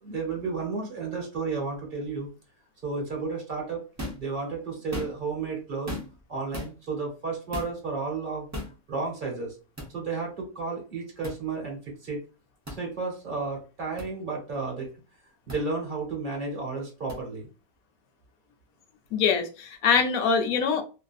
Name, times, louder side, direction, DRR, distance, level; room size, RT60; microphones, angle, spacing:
voice 1, 0.0-2.3 2.8-3.9 4.2-6.0 6.3-8.5 8.9-9.6 9.9-12.2 12.7-14.9 15.5-17.5, right 4 dB, 40° right, 0 dB, 1.1 m, -32 dB
sound 1, 4.0-4.3 4.8-5.3 5.9-6.2 6.5-6.7 7.5-7.8 8.5-8.8 9.8-9.9 11.2-11.4 12.6-12.8 14.0-14.1 15.5-15.6 17.1-17.2, left 1 dB, 15° right, 0.6 m, -36 dB
voice 2, 19.1-20.8, left 6 dB, 85° left, 6 dB, 1.0 m, -23 dB
2.7 x 2.5 x 2.3 m, 0.33 s
omnidirectional pair, 1.5 m